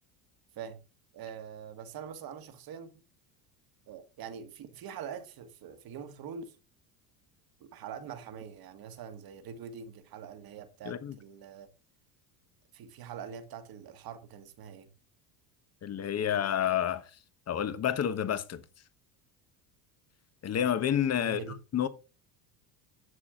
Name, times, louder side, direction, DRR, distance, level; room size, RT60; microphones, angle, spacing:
voice 1, 1.1-2.9 3.9-6.5 7.6-11.7 12.7-14.9 21.2-21.6, right 7 dB, 50° right, 1.8 m, -44 dB
voice 2, 10.8-11.2 15.8-17.0 17.5-18.6 20.4-21.9, left 9 dB, 35° left, 1.2 m, -29 dB
11.0 x 7.3 x 3.8 m
supercardioid pair, 110°, 47 cm